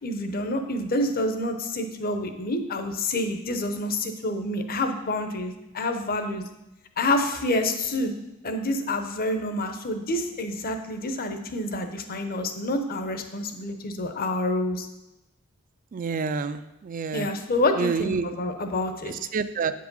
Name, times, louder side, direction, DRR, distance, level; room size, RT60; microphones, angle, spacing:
voice 1, 0.0-6.4 7.0-8.1 8.4-14.9 17.1-19.1, left 1 dB, 45° left, 6 dB, 0.8 m, -28 dB
voice 2, 15.9-17.3 17.8-18.3 19.0-19.7, right 5 dB, 40° right, 11 dB, 0.3 m, -28 dB
8.4 x 4.7 x 5.4 m, 0.95 s
head